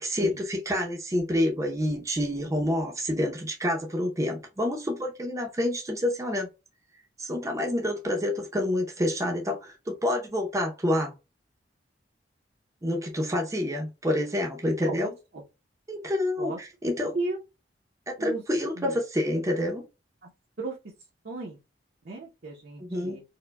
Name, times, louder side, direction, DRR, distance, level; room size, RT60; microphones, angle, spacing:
voice 1, 0.0-6.5 7.2-11.1 12.8-15.1 15.9-17.2 18.1-19.9 22.8-23.2, left 1 dB, 20° right, 0.6 m, -28 dB
voice 2, 14.8-15.4 16.4-16.6 17.1-17.4 18.2-18.4 18.8-19.0 20.2-20.3 20.6-20.8 21.2-21.6 22.0-23.2, right 3 dB, 60° right, 0.7 m, -35 dB
4.5 x 2.1 x 2.2 m
head